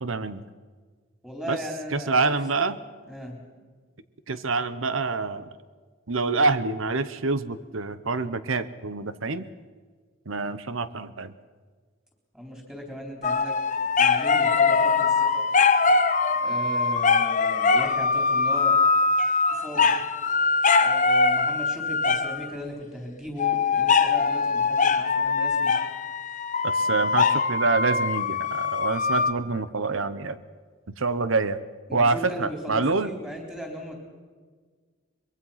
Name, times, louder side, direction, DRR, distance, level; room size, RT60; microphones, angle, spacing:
voice 1, 0.0-0.4 1.5-1.6 1.9-2.8 4.3-5.5 6.1-9.4 10.3-11.3 26.6-30.4 31.0-31.6 31.9-33.1, right 3 dB, 70° right, 14 dB, 1.0 m, -26 dB
voice 2, 1.2-2.4 3.1-3.4 12.3-13.6 14.0-15.5 16.4-18.8 19.5-19.9 20.8-25.7 31.9-34.0, equal, 5° right, 1 dB, 3.9 m, -37 dB
sound 1, 13.2-22.5 23.4-29.3, left 4 dB, 35° left, 0.9 m, -22 dB
23.5 x 22.0 x 5.8 m, 1.5 s
head